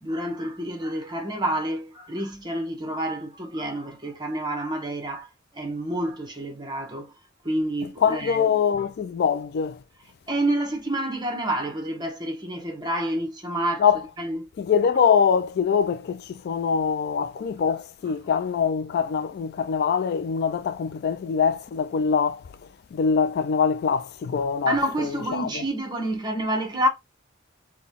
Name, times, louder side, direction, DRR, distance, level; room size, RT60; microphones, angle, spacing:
voice 1, 0.0-5.3 5.5-7.1 7.4-8.5 10.3-13.8 14.2-14.5 24.7-26.9, right 1 dB, 20° right, 1.0 m, -28 dB
voice 2, 8.0-9.8 13.8-14.0 14.6-22.4 22.9-25.6, left 6 dB, 50° left, 0.3 m, -23 dB
3.8 x 2.2 x 3.4 m
head